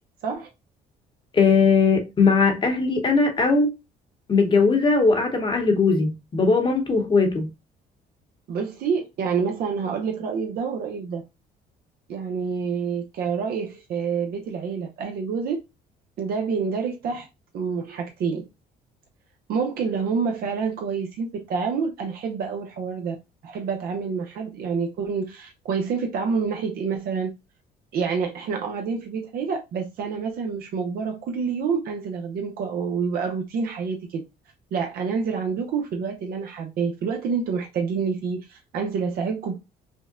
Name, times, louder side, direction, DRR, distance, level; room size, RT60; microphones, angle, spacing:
voice 1, 1.3-3.7 4.3-7.5, left 4 dB, 30° left, 1.0 m, -19 dB
voice 2, 8.5-11.2 12.1-15.6 16.2-17.3 17.5-18.4 19.5-23.2 23.4-27.3 27.9-34.2 34.7-39.6, right 5 dB, 65° right, 0.7 m, -27 dB
5.3 x 2.1 x 2.4 m
cardioid pair, 110°, 17 cm